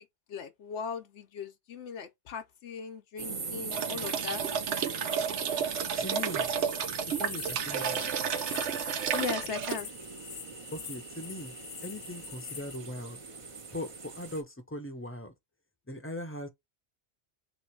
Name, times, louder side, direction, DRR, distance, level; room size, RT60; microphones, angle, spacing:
voice 1, 0.3-4.4 9.1-9.9, left 6 dB, 80° left, 1.0 m, -38 dB
sound 1, 3.2-14.4, right 4 dB, 35° right, 0.6 m, -40 dB
sound 2, 3.7-9.8, right 8 dB, 85° right, 0.9 m, -32 dB
voice 2, 6.0-6.5 7.0-8.0 10.7-11.6 11.8-13.2 13.7-15.3 15.9-16.5, left 1 dB, 15° left, 0.5 m, -40 dB
sound 3, 7.0-12.8, left 8 dB, 55° left, 0.7 m, -45 dB
3.1 x 3.0 x 4.4 m
omnidirectional pair, 1.2 m